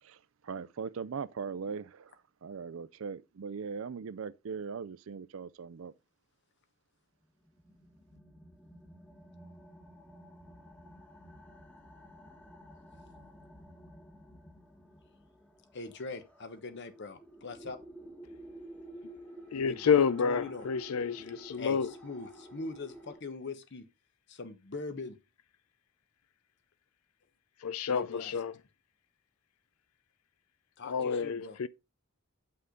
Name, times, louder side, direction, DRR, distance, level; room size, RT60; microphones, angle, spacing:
voice 1, 0.0-2.2 2.4-5.9, right 6 dB, 65° right, 0.4 m, -40 dB
sound 1, 7.4-23.2, right 1 dB, 5° left, 1.3 m, -52 dB
voice 2, 15.7-17.8 19.5-21.1 21.6-23.8 24.3-25.2 27.9-28.3 30.8-31.6, left 3 dB, 55° left, 1.0 m, -42 dB
voice 3, 19.5-21.9 27.6-28.5 30.8-31.7, left 6 dB, 90° left, 0.5 m, -29 dB
7.9 x 5.7 x 3.8 m
head